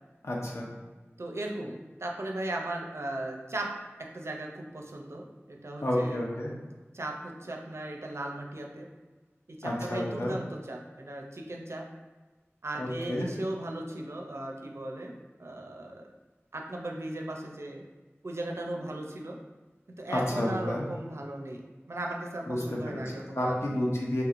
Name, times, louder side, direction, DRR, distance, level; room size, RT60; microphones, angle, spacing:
voice 1, 0.2-0.7 5.8-6.5 9.6-10.4 12.8-13.3 20.1-20.8 22.5-23.0 23.3-24.2, left 1 dB, 65° left, -3 dB, 0.6 m, -30 dB
voice 2, 1.2-3.7 4.0-6.2 6.9-8.9 9.5-11.8 12.6-16.1 16.5-17.8 18.2-19.4 20.0-21.6 21.9-23.6, right 1 dB, 65° right, 1 dB, 0.4 m, -37 dB
3.0 x 2.8 x 2.4 m, 1.3 s
wide cardioid pair, 40°, 5 cm